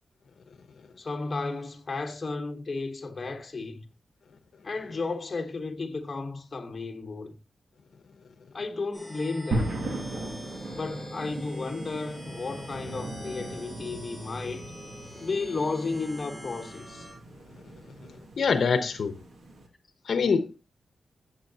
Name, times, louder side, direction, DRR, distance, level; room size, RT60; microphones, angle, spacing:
voice 1, 1.0-3.8 4.6-7.4 8.5-9.8 10.7-14.7 15.2-17.1, left 3 dB, 30° left, 1.1 m, -33 dB
sound 1, 8.9-17.1, equal, ahead, 7.2 m, -44 dB
sound 2, 9.5-19.7, right 1 dB, 65° right, 2.0 m, -38 dB
voice 2, 18.4-19.1 20.1-20.6, left 5 dB, 65° left, 0.9 m, -24 dB
16.0 x 7.6 x 2.8 m
wide cardioid pair, 165°, 0 cm